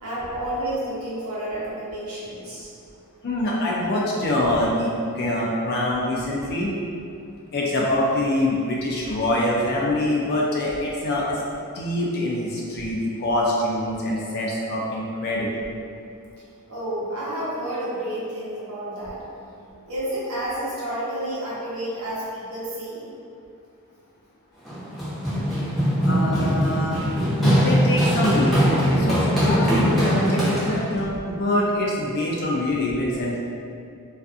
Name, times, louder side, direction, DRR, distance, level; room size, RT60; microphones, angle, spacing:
voice 1, 0.0-2.7 16.7-19.2 19.9-23.0, right 1 dB, 65° right, -8 dB, 0.8 m, -30 dB
voice 2, 3.2-6.7 7.5-11.4 11.7-15.6 26.0-27.0 27.4-33.4, left 1 dB, 45° left, -4 dB, 0.3 m, -24 dB
Run, 24.7-31.0, equal, ahead, 0.6 m, -21 dB
2.4 x 2.4 x 2.4 m, 2.5 s
head